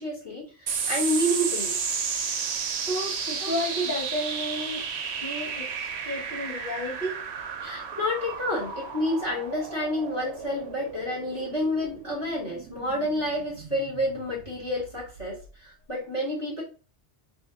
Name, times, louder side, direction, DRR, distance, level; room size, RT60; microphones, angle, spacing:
voice 1, 0.0-1.8 3.4-3.5 7.6-16.6, left 1 dB, 30° left, 1.4 m, -29 dB
sound 1, 0.7-15.5, right 6 dB, 70° right, 0.8 m, -33 dB
voice 2, 2.8-4.9 5.2-7.2, equal, 50° left, 1.3 m, -32 dB
2.8 x 2.4 x 3.5 m
omnidirectional pair, 1.2 m